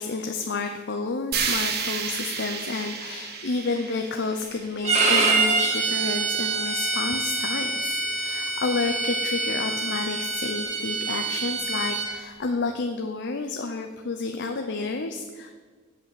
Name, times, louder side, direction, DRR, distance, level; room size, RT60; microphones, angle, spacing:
voice 1, 0.0-15.5, left 3 dB, 60° left, 5 dB, 0.7 m, -30 dB
sound 1, 1.3-5.4, right 6 dB, 55° right, 1.2 m, -31 dB
Bowed string instrument, 4.8-12.1, right 3 dB, 35° right, 2.2 m, -25 dB
8.0 x 7.6 x 8.3 m, 1.5 s
head